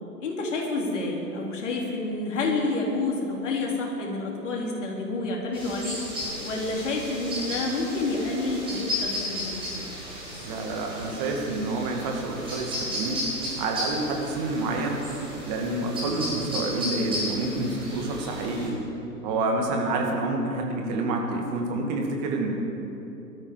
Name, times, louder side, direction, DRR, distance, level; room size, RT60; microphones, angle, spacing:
voice 1, 0.2-6.0 6.4-9.6, left 3 dB, 45° left, -1 dB, 3.5 m, -29 dB
sound 1, 5.5-18.7, left 1 dB, 10° right, 4.8 m, -34 dB
voice 2, 10.4-13.3 13.6-15.0 15.4-18.8 19.2-22.5, right 2 dB, 25° right, 1 dB, 2.0 m, -28 dB
20.5 x 13.5 x 5.0 m, 3.0 s
figure-of-eight pair, 125°, 49 cm